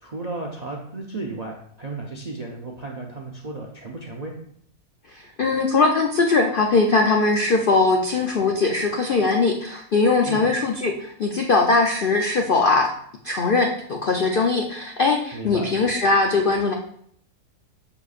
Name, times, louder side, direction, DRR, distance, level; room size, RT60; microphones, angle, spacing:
voice 1, 0.0-4.3 10.2-10.5 15.3-15.7, right 2 dB, 50° right, 0 dB, 0.4 m, -34 dB
voice 2, 5.4-12.9 13.2-16.7, left 3 dB, 70° left, 2 dB, 0.5 m, -20 dB
6.9 x 6.4 x 2.4 m, 0.65 s
omnidirectional pair, 1.7 m